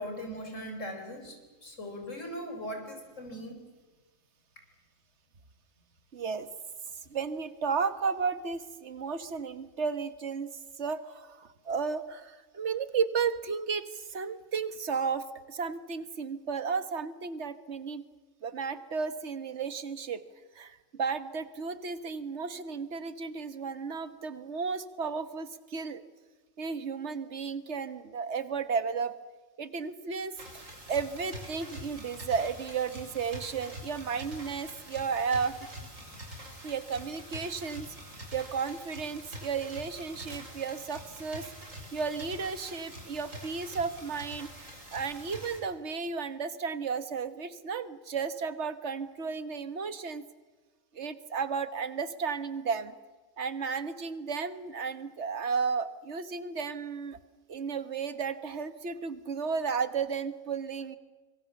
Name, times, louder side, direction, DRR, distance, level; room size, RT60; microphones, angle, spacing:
voice 1, 0.0-3.6, equal, 70° left, 4 dB, 4.7 m, -39 dB
voice 2, 6.1-6.5 7.1-18.1 18.4-20.2 20.5-26.0 26.6-29.1 29.6-35.6 36.6-37.9 38.3-41.5 41.9-44.5 44.9-50.3 50.9-52.9 53.4-57.2 57.5-61.0, right 5 dB, 60° right, 12 dB, 1.7 m, -33 dB
sound 1, 30.4-45.6, equal, 85° right, 5.9 m, -45 dB
25.5 x 23.5 x 7.1 m, 1.3 s
omnidirectional pair, 1.3 m